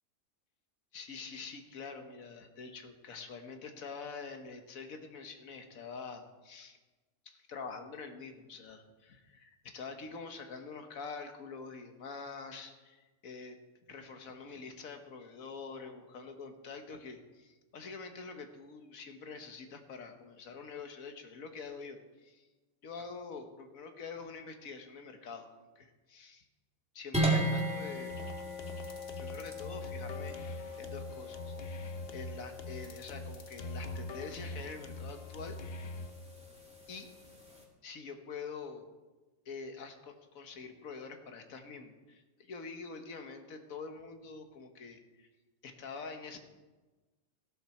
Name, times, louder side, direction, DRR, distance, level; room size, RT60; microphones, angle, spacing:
voice 1, 0.9-6.8 7.2-13.6 13.9-22.5 22.8-25.5 25.7-26.4 26.9-28.2 29.2-30.4 30.8-31.5 32.1-35.6 36.9-37.1 37.8-38.9 39.4-45.3 45.6-46.4, left 4 dB, 75° left, 6 dB, 1.7 m, -46 dB
sound 1, 27.1-37.6, right 1 dB, 5° right, 2.2 m, -38 dB
sound 2, 28.1-36.1, left 1 dB, 50° left, 1.0 m, -43 dB
15.5 x 12.0 x 4.4 m, 1.2 s
omnidirectional pair, 1.4 m